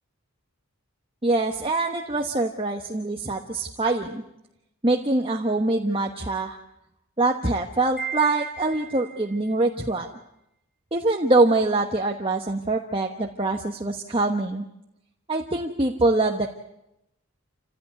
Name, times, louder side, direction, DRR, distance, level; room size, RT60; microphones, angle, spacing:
voice 1, 1.2-4.2 4.8-6.6 7.2-10.1 10.9-14.7 15.3-16.5, right 2 dB, 25° right, 2 dB, 1.2 m, -24 dB
Wind chime, 8.0-9.4, right 7 dB, 10° left, 5.0 m, -35 dB
28.0 x 16.0 x 9.5 m, 0.86 s
head